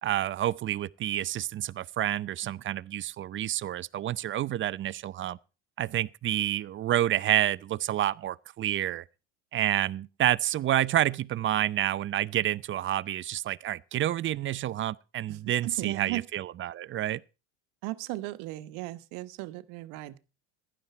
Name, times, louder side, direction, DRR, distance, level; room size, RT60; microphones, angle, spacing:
voice 1, 0.0-5.4 5.8-9.0 9.5-17.2, right 12 dB, 35° right, 0.6 m, -29 dB
voice 2, 15.3-16.3 17.8-20.2, right 18 dB, 65° right, 1.3 m, -36 dB
15.5 x 11.5 x 4.4 m
hypercardioid pair, 90°, 35 cm